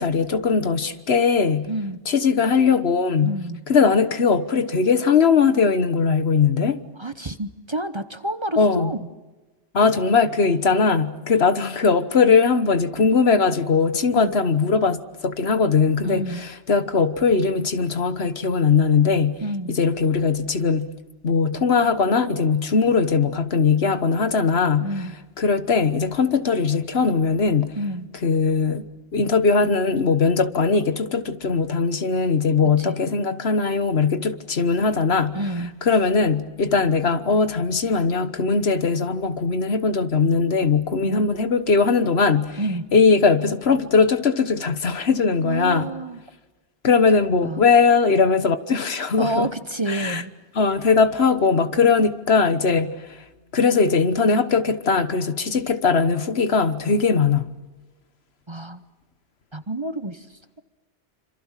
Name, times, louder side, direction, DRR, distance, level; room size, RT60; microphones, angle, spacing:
voice 1, 0.0-1.7 2.1-3.4 3.7-6.8 8.6-8.9 9.7-19.4 19.7-20.9 21.2-24.9 25.4-27.8 28.2-28.9 29.1-35.4 35.8-42.6 42.9-45.9 46.8-49.5 49.9-50.2 50.5-53.2 53.5-57.5, left 5 dB, 70° left, 1.5 m, -20 dB
voice 2, 1.7-2.0 3.2-3.6 7.0-9.1 14.1-14.3 16.0-16.5 19.4-19.8 24.8-25.2 27.8-28.1 32.8-33.0 35.3-35.7 41.0-41.3 42.6-42.9 45.4-46.2 47.4-47.6 49.2-50.3 58.5-58.8 59.5-60.3, right 1 dB, 25° right, 0.9 m, -29 dB
27.0 x 26.5 x 7.5 m
omnidirectional pair, 1.1 m